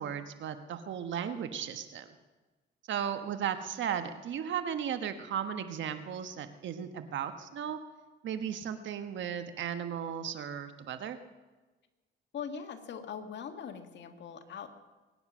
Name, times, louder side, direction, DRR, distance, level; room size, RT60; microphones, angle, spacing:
voice 1, 0.0-2.1 2.9-7.8 8.2-11.2, right 8 dB, 70° right, 9 dB, 1.4 m, -35 dB
voice 2, 12.3-14.7, left 7 dB, 65° left, 6 dB, 1.8 m, -41 dB
22.5 x 9.7 x 6.2 m, 1.2 s
cardioid pair, 90°, 20 cm